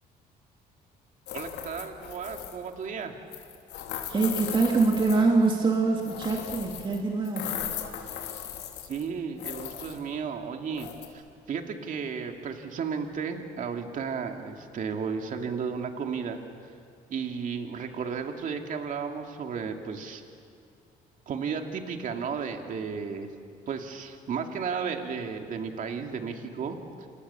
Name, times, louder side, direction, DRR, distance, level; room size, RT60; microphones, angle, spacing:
sound 1, 1.3-2.7 3.3-5.5 6.0-7.0 7.3-9.1 9.4-10.0 10.8-11.1, left 10 dB, 85° left, 3.3 m, -37 dB
voice 1, 1.3-3.1 8.8-10.9 11.1-11.2 11.5-16.7 17.1-20.2 21.3-23.3 23.7-26.8, right 6 dB, 50° right, 4 dB, 2.6 m, -33 dB
voice 2, 4.1-7.5, right 3 dB, 30° right, 0 dB, 2.7 m, -24 dB
28.5 x 28.0 x 7.2 m, 2.4 s
cardioid pair, 110°, 17 cm